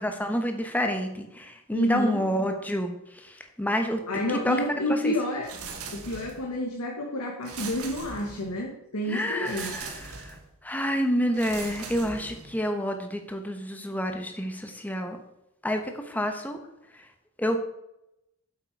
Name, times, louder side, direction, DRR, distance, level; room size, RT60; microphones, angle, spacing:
voice 1, 0.0-4.6 4.9-5.1 9.1-10.4 10.6-15.2 15.6-16.6 17.4-17.6, equal, 5° left, 5 dB, 1.0 m, -29 dB
voice 2, 1.7-2.2 4.1-5.5 5.9-9.8, left 1 dB, 80° left, 0 dB, 1.4 m, -30 dB
sound 1, 5.4-6.5 7.4-8.6 9.4-10.5 11.3-12.6, right 4 dB, 75° right, 1.6 m, -40 dB
8.3 x 7.5 x 4.6 m, 0.86 s
head